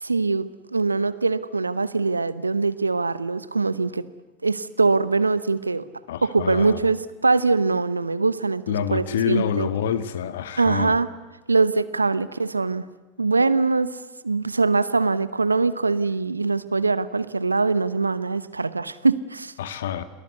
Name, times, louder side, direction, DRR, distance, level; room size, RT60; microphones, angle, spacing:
voice 1, 0.0-4.0 4.4-5.8 6.2-8.6 8.9-9.7 10.6-11.1 11.5-12.9 13.2-14.0 14.2-19.5, right 3 dB, 90° right, 0.9 m, -22 dB
voice 2, 6.1-6.8 8.7-10.9 19.6-20.0, left 9 dB, 70° left, 1.5 m, -27 dB
28.5 x 18.5 x 8.2 m
figure-of-eight pair, 80°, 0 cm